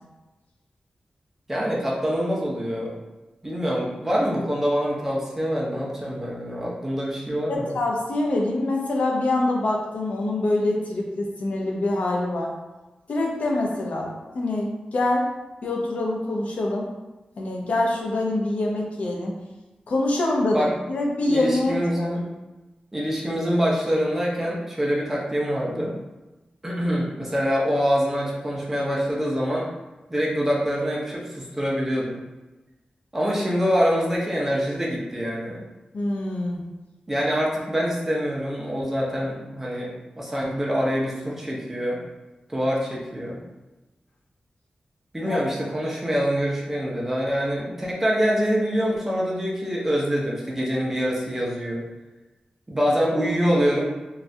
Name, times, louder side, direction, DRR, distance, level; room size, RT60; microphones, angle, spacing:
voice 1, 1.5-2.9 3.4-7.7 20.5-20.7 21.3-22.3 22.9-26.0 26.6-29.7 30.1-32.2 33.1-35.6 37.1-39.9 40.2-42.0 42.5-43.4 45.1-51.8 52.7-53.8, equal, 10° right, -4 dB, 0.6 m, -25 dB
voice 2, 7.5-12.5 13.1-15.3 15.6-16.9 17.4-19.4 19.9-22.1 35.9-36.6 45.3-45.4, left 2 dB, 60° left, -1 dB, 0.5 m, -25 dB
3.1 x 2.3 x 2.6 m, 1.1 s
wide cardioid pair, 165°, 3 cm